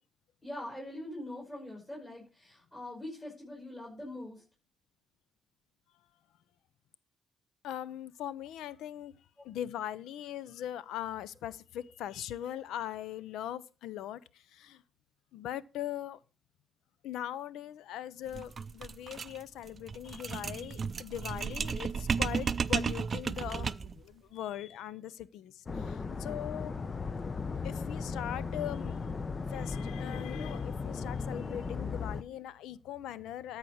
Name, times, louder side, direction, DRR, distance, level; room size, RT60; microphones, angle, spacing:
voice 1, 0.4-4.4, left 1 dB, 15° left, 5.7 m, -43 dB
voice 2, 7.6-9.1 9.4-14.8 15.3-16.2 17.0-26.8 27.6-29.0 29.5-33.6, left 11 dB, 85° left, 0.6 m, -40 dB
sound 1, 18.3-24.0, right 5 dB, 40° right, 0.4 m, -34 dB
sound 2, 25.7-32.2, left 4 dB, 35° left, 0.7 m, -36 dB
13.5 x 4.9 x 6.3 m
cardioid pair, 90°, 0 cm